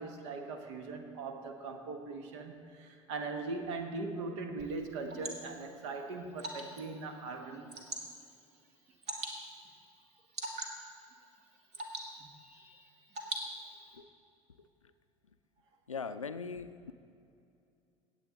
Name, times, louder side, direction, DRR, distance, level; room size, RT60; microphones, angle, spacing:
voice 1, 0.0-7.7, right 3 dB, 65° right, 6 dB, 1.2 m, -40 dB
Water / Drip, 4.6-14.0, right 1 dB, 45° right, 1.7 m, -45 dB
voice 2, 14.6-14.9 15.9-16.9, left 5 dB, 90° left, 12 dB, 0.4 m, -41 dB
17.0 x 8.1 x 3.8 m, 2.6 s
figure-of-eight pair, 65°, 16 cm